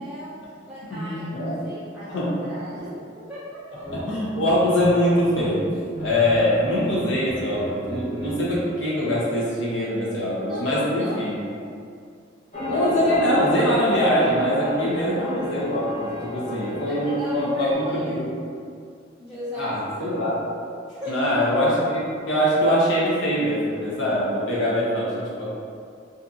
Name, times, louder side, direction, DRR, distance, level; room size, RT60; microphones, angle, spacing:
voice 1, 0.0-3.9 7.0-7.3 10.3-11.2 16.9-18.2 19.2-20.1 20.9-21.3, equal, 5° right, -13 dB, 0.4 m, -37 dB
voice 2, 0.9-1.6 2.1-2.3 3.9-5.6 6.0-11.4 12.7-18.2 19.6-20.4 21.1-25.5, equal, 75° left, -7 dB, 0.8 m, -23 dB
sound 1, 3.8-4.0 4.4-5.5 5.8-6.5 6.7-8.6, right 1 dB, 25° right, 0.9 m, -36 dB
sound 2, 12.5-17.7, left 1 dB, 35° left, 0.8 m, -31 dB
2.6 x 2.5 x 2.4 m, 2.3 s
head